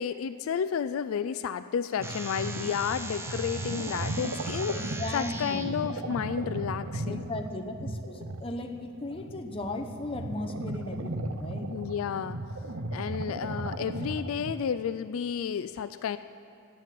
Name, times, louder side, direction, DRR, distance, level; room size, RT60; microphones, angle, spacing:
voice 1, 0.0-7.3 11.7-12.4 12.9-16.2, left 7 dB, 75° left, 12 dB, 0.3 m, -32 dB
sound 1, 2.0-5.6, right 2 dB, 10° right, 0.6 m, -40 dB
sound 2, 2.0-14.5, right 2 dB, 75° right, 0.7 m, -36 dB
voice 2, 4.7-5.8 7.1-11.7, left 2 dB, 25° left, 4 dB, 0.8 m, -36 dB
10.5 x 9.4 x 7.6 m, 2.5 s
head